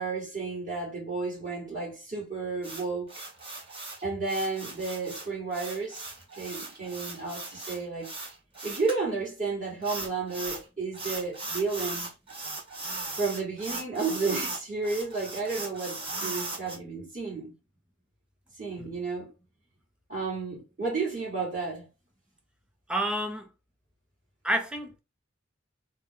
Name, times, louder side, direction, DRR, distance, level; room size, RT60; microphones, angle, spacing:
voice 1, 0.0-3.2 4.0-8.1 8.6-12.1 13.2-17.5 18.6-19.3 20.1-21.9, right 4 dB, 45° right, 2.1 m, -32 dB
sound 1, 2.6-9.0 9.8-10.6 10.9-16.8, right 2 dB, 30° right, 1.6 m, -38 dB
voice 2, 22.9-23.5 24.4-25.0, right 1 dB, 5° right, 0.5 m, -29 dB
3.4 x 2.4 x 3.6 m
head